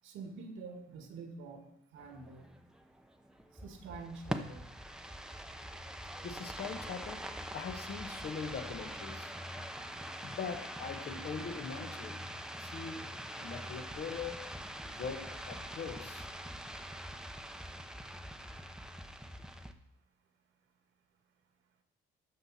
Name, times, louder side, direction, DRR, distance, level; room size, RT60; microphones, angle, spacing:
voice 1, 0.0-1.7 1.9-2.4 3.6-4.6, right 4 dB, 90° right, 1.8 m, -46 dB
sound 1, 2.0-19.7, equal, 5° right, 0.7 m, -44 dB
voice 2, 6.2-9.4 10.2-12.2 12.6-14.6 15.0-16.3, left 6 dB, 55° left, 1.1 m, -42 dB
13.0 x 5.8 x 4.2 m
cardioid pair, 90°, 20 cm